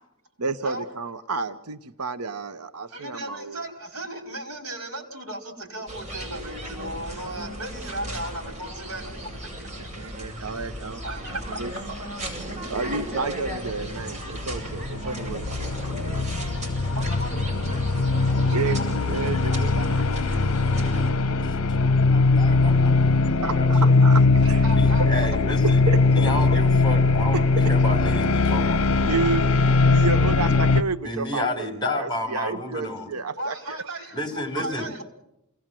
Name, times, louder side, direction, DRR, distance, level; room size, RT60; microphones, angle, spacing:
voice 1, 0.4-3.6 9.8-11.0 11.6-11.7 12.7-16.3 18.5-20.0 23.4-24.2 24.5-24.6 25.6-26.3 27.3-27.4 28.6-28.7 29.0-29.5 29.9-33.8, right 4 dB, 90° right, 10 dB, 1.0 m, -31 dB
voice 2, 2.9-9.3 9.6-9.7 10.1-10.6 11.0-11.6 11.9-12.9 16.9-17.3 18.4-18.9 22.4-22.5 24.6-25.6 26.4-26.6 33.4-35.0, right 1 dB, 70° right, 5 dB, 5.4 m, -36 dB
sound 1, 5.9-21.1, right 1 dB, 30° right, 6.7 m, -35 dB
sound 2, 14.4-30.8, left 3 dB, 65° left, 0.8 m, -20 dB
voice 3, 17.1-17.4 20.0-20.2 20.5-23.0 23.4-23.9 24.7-25.8 26.1-28.8 30.5-30.6 31.0-33.1 34.1-34.9, left 1 dB, 20° left, 6 dB, 3.9 m, -32 dB
28.5 x 19.0 x 7.6 m, 0.83 s
head